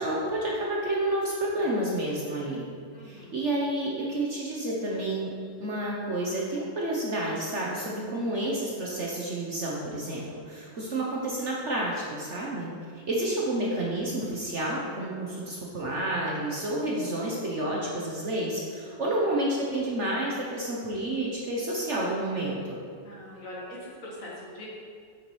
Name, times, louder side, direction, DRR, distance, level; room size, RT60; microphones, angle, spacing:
voice 1, 0.0-2.6 3.0-5.3 5.6-12.7 13.1-22.8, right 1 dB, 50° right, -4 dB, 1.0 m, -30 dB
voice 2, 2.9-3.4 23.0-24.7, left 1 dB, 50° left, -4 dB, 1.9 m, -42 dB
8.3 x 7.0 x 3.2 m, 2.2 s
omnidirectional pair, 2.0 m